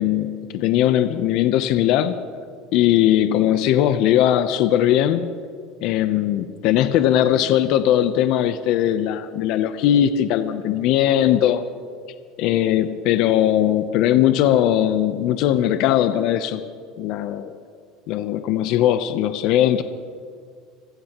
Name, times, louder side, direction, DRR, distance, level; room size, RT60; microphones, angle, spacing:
voice 1, 0.0-2.2 2.7-5.3 5.8-11.6 12.4-16.6 17.0-17.5 18.1-19.8, left 11 dB, 65° left, 10 dB, 0.7 m, -19 dB
26.5 x 16.0 x 3.0 m, 2.1 s
supercardioid pair, 115°, 0 cm